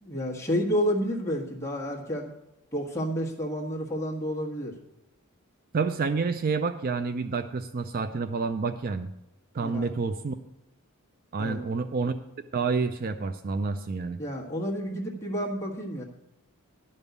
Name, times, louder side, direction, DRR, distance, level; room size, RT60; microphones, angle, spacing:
voice 1, 0.0-2.3 2.7-4.7 9.6-9.9 11.4-11.7 14.2-16.0, equal, 15° left, -2 dB, 1.5 m, -30 dB
voice 2, 5.7-9.1 9.5-10.3 11.3-12.1 12.5-14.2, right 4 dB, 40° right, 10 dB, 0.4 m, -28 dB
11.0 x 5.4 x 8.1 m, 0.93 s
head